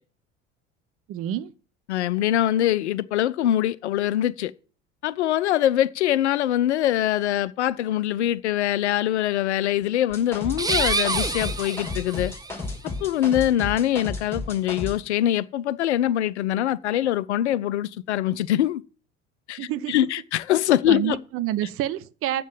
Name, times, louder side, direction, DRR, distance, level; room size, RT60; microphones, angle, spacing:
voice 1, 1.1-1.5 19.6-19.9 20.9-22.4, right 12 dB, 40° right, 0.7 m, -28 dB
voice 2, 1.9-4.5 5.0-12.3 13.0-18.8 19.5-21.2, left 12 dB, 70° left, 0.5 m, -23 dB
sound 1, 10.1-15.0, left 3 dB, 5° left, 5.0 m, -33 dB
sound 2, 10.5-12.5, right 3 dB, 10° right, 1.0 m, -27 dB
7.4 x 7.3 x 7.7 m
figure-of-eight pair, 65°, 36 cm